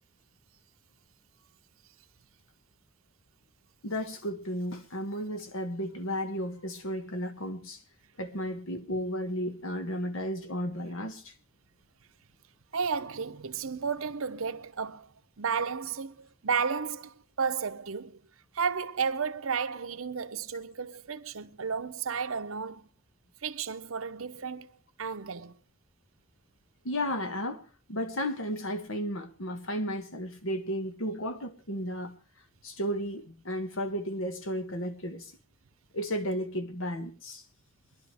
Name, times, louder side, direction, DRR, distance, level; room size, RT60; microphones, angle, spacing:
voice 1, 3.8-7.8 8.2-11.3 26.8-27.6 27.9-32.2 32.6-35.3 35.9-37.4, equal, 75° left, 1.7 m, -33 dB
voice 2, 12.7-15.1 15.4-18.2 18.5-22.9 23.4-24.7 25.0-25.6, right 6 dB, 80° right, 0.8 m, -33 dB
23.0 x 11.5 x 3.5 m
head